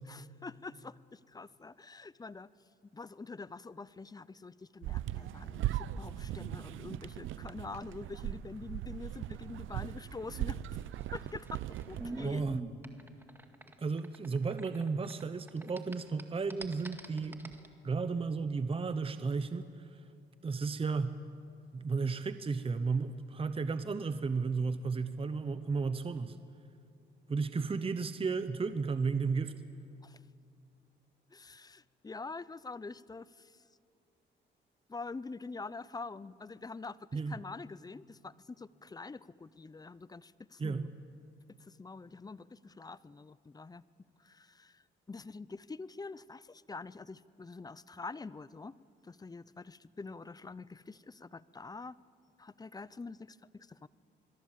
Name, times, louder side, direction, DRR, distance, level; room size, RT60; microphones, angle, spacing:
voice 1, 0.1-2.5 2.9-10.6 10.9-11.6 11.9-12.4 30.0-30.2 31.3-33.6 34.9-40.9 41.6-43.8 44.2-48.7 49.0-51.9 52.4-53.9, left 3 dB, 20° left, 18 dB, 0.6 m, -46 dB
sound 1, 4.8-12.6, right 13 dB, 80° right, 0.7 m, -39 dB
sound 2, 10.9-15.2 15.5-17.7, right 1 dB, 10° right, 2.0 m, -45 dB
voice 2, 12.2-12.7 13.8-17.5 17.8-20.0 20.4-21.2 21.7-26.4 27.3-29.5 37.1-37.4 40.6-40.9, right 4 dB, 30° right, 11 dB, 0.9 m, -33 dB
26.5 x 21.5 x 7.5 m, 2.5 s
cardioid pair, 90°, 20 cm